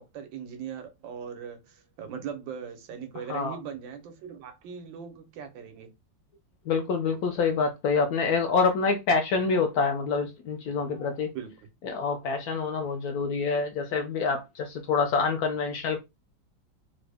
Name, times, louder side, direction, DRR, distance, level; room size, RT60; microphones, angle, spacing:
voice 1, 0.0-5.9 11.3-11.5, right 7 dB, 90° right, 1.5 m, -39 dB
voice 2, 6.7-11.3 11.8-16.0, left 4 dB, 70° left, 0.9 m, -26 dB
3.7 x 2.0 x 3.3 m
omnidirectional pair, 2.0 m